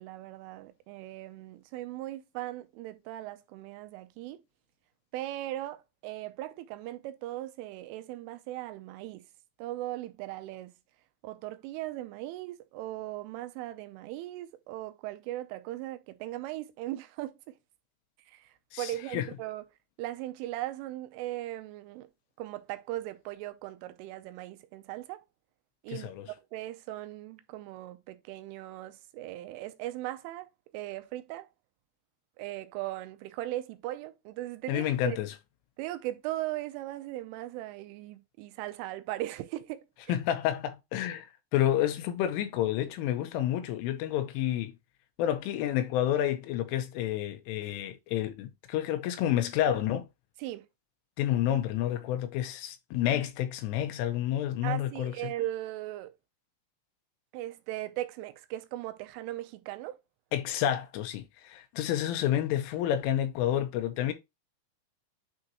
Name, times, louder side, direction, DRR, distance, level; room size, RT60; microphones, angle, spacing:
voice 1, 0.0-4.4 5.1-9.2 9.6-10.7 11.2-17.6 18.3-19.6 20.0-22.1 22.4-25.2 25.8-30.5 30.7-31.5 32.4-35.2 35.8-39.8 50.4-50.7 54.6-56.1 57.3-60.0, right 15 dB, 90° right, 3.2 m, -38 dB
voice 2, 18.7-19.3 25.9-26.3 34.7-35.3 40.1-41.3 41.5-44.7 45.2-50.1 51.2-55.3 60.3-64.1, left 11 dB, 90° left, 3.4 m, -29 dB
9.7 x 3.8 x 2.9 m
omnidirectional pair, 5.7 m